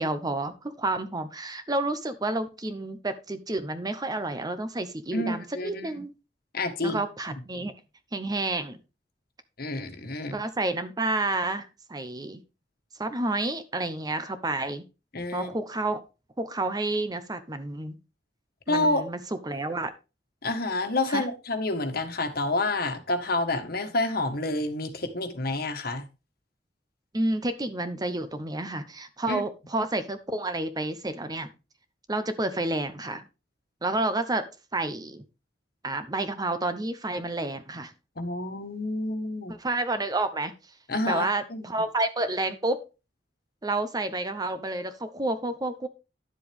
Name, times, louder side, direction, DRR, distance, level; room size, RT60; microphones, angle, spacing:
voice 1, 0.0-6.1 6.8-7.7 8.1-8.8 10.3-12.4 13.0-14.8 15.3-16.0 16.4-18.0 18.7-19.2 19.4-19.9 21.1-21.2 27.1-31.5 32.1-33.2 33.8-34.5 34.7-35.2 35.8-37.9 39.5-40.5 41.1-42.8 43.6-45.9, right 2 dB, 20° right, 11 dB, 0.8 m, -30 dB
voice 2, 5.1-6.0 6.5-7.0 7.5-7.7 9.6-10.4 15.1-15.5 18.7-19.0 20.4-26.0 29.3-29.4 38.2-39.6 40.9-41.7, left 2 dB, 60° left, 7 dB, 1.5 m, -29 dB
10.5 x 7.6 x 3.5 m, 0.29 s
head